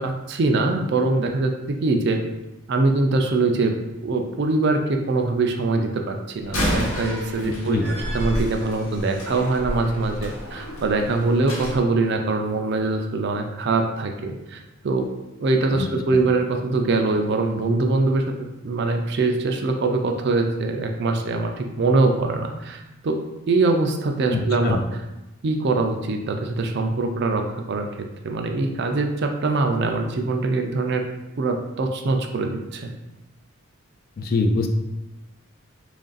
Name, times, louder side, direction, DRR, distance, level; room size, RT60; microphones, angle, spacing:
voice 1, 0.0-2.2 2.7-3.7 4.0-7.8 8.1-15.1 15.4-18.2 18.6-23.2 23.5-24.8 25.4-27.4 27.7-31.0 31.4-32.9, right 3 dB, 50° right, 4 dB, 0.4 m, -23 dB
Slam, 6.4-11.8, equal, 70° left, 1.0 m, -29 dB
voice 2, 7.4-7.9 15.7-15.9 24.3-24.8 34.2-34.7, left 3 dB, 45° left, 5 dB, 0.3 m, -24 dB
3.2 x 2.5 x 3.9 m, 0.96 s
head